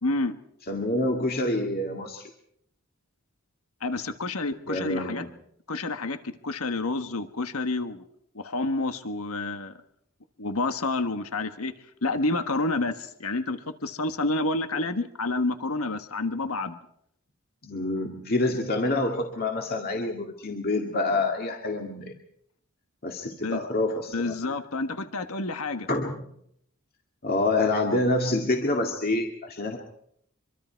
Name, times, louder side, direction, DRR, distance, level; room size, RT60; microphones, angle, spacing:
voice 1, 0.0-0.4 3.8-5.2 5.7-8.1 8.3-9.8 10.4-11.7 12.0-16.8 23.4-23.6 24.1-25.9, left 2 dB, 80° left, 8 dB, 1.4 m, -29 dB
voice 2, 0.7-2.3 4.7-5.3 17.6-22.2 23.0-24.5 25.9-26.3 27.2-29.8, left 2 dB, 45° left, 1 dB, 2.2 m, -27 dB
25.0 x 24.5 x 4.6 m, 0.72 s
head